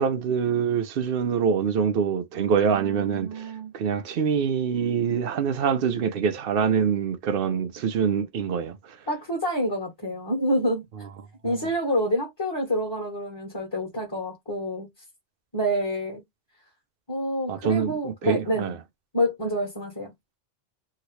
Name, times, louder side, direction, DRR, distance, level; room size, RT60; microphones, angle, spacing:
voice 1, 0.0-9.0 11.4-11.6 17.5-18.8, right 7 dB, 60° right, 0.7 m, -25 dB
voice 2, 2.6-3.7 9.1-10.8 11.4-14.9 15.5-16.2 17.1-18.7 19.1-20.1, equal, 20° left, 1.2 m, -27 dB
2.9 x 2.8 x 3.0 m
omnidirectional pair, 1.2 m